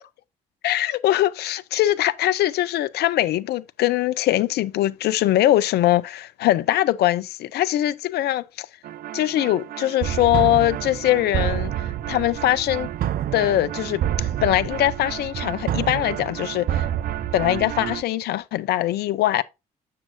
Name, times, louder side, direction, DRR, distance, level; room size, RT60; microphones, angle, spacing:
voice 1, 0.6-8.7 9.1-11.7 12.1-12.9 13.3-16.9 17.3-19.4, left 14 dB, 65° left, 0.5 m, -22 dB
sound 1, 8.8-18.0, right 11 dB, 55° right, 0.5 m, -28 dB
7.1 x 6.8 x 2.5 m
hypercardioid pair, 50°, 18 cm